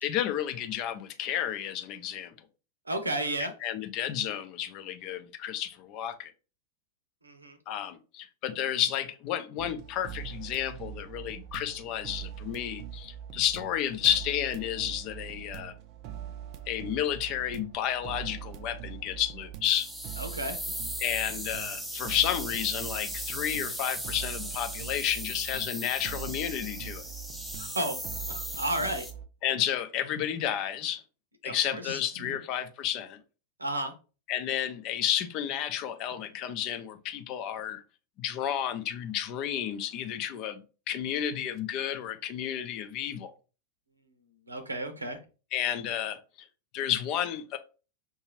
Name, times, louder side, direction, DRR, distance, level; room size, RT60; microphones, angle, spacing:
voice 1, 0.0-2.3 3.6-6.3 7.7-15.7 16.7-19.9 21.0-27.0 29.4-31.0 31.4-33.2 34.3-37.8 38.2-43.3 45.5-46.2 46.7-47.6, left 10 dB, 40° left, 0.6 m, -31 dB
voice 2, 2.9-3.5 7.2-7.6 20.2-20.7 27.6-28.0 28.5-29.1 31.4-32.0 32.3-32.4 33.6-33.9 44.5-45.2, right 1 dB, 80° right, 0.8 m, -32 dB
sound 1, 9.6-29.3, right 10 dB, 40° right, 0.5 m, -43 dB
sound 2, 19.6-29.1, equal, 5° right, 1.0 m, -38 dB
5.9 x 2.7 x 3.0 m
figure-of-eight pair, 90°, 0 cm